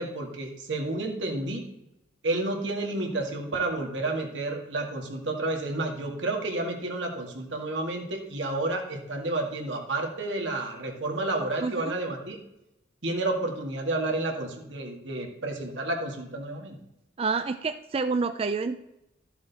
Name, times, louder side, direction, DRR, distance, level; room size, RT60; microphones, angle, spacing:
voice 1, 0.0-1.6 2.2-12.4 13.0-16.8, right 2 dB, 85° right, 2 dB, 2.0 m, -30 dB
voice 2, 11.6-12.0 17.2-18.8, right 4 dB, 30° right, 10 dB, 0.3 m, -28 dB
13.0 x 7.0 x 4.1 m, 0.88 s
head